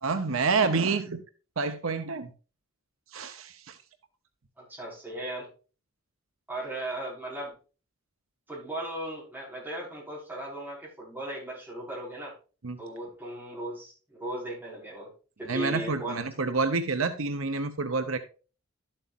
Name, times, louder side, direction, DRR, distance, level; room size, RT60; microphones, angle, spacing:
voice 1, 0.0-1.2 1.6-2.3 3.1-3.8 12.6-12.8 15.5-18.2, right 4 dB, 80° right, 9 dB, 0.9 m, -28 dB
voice 2, 4.6-5.5 6.5-7.5 8.5-12.3 12.8-15.1 15.4-16.2, right 1 dB, 10° right, -6 dB, 5.4 m, -37 dB
12.0 x 7.7 x 2.6 m, 0.35 s
head